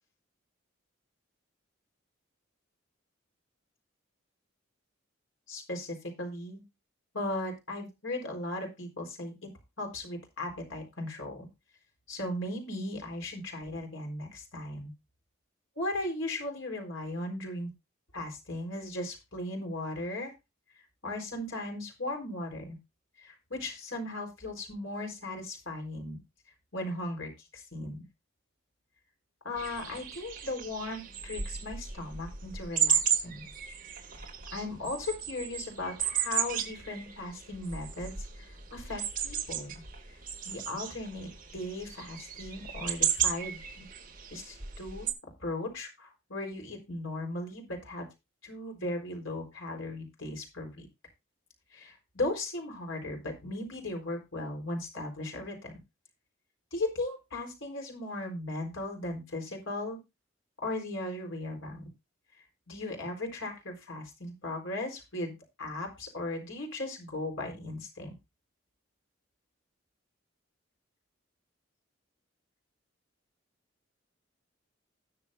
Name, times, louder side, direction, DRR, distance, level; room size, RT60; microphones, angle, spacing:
voice 1, 5.5-6.6 7.1-9.5 9.8-11.5 12.1-14.9 15.8-17.7 18.1-20.3 21.0-22.8 23.2-26.2 26.7-28.0 29.4-33.5 34.1-39.7 40.1-40.2 40.4-43.9 44.3-45.1 45.4-48.1 48.4-50.9 51.7-55.7 56.7-60.0 60.6-61.9 62.4-68.1, left 2 dB, 75° left, 1 dB, 4.0 m, -37 dB
sound 1, 29.6-45.1, right 8 dB, 40° right, 2.5 m, -34 dB
19.5 x 6.7 x 2.6 m, 0.24 s
head